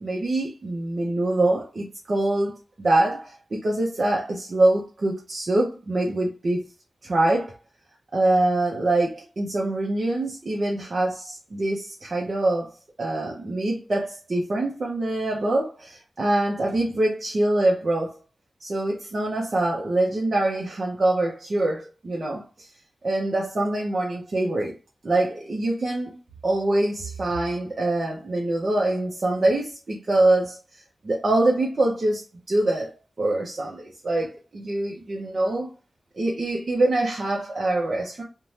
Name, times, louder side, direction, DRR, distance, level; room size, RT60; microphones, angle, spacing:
voice 1, 0.0-2.5 2.8-6.6 7.0-7.5 8.1-12.7 13.0-18.2 18.6-22.7 23.0-24.7 25.0-26.1 26.4-30.6 31.0-32.9 33.2-35.7 36.2-38.2, right 2 dB, 60° right, 0.6 m, -24 dB
2.6 x 2.2 x 3.1 m
cardioid pair, 50°, 0 cm